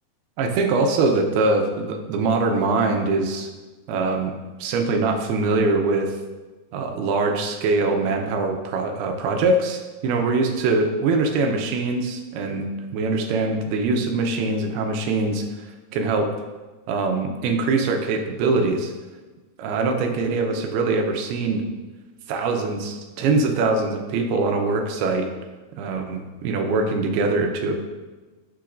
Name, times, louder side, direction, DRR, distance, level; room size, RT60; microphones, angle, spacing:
voice 1, 0.4-3.5 3.9-4.3 4.6-6.1 6.7-15.5 15.9-16.3 16.9-18.9 19.6-21.6 22.3-25.3 25.8-27.8, right 3 dB, 80° right, 4 dB, 2.7 m, -23 dB
11.5 x 6.9 x 2.6 m, 1.2 s
omnidirectional pair, 4.7 m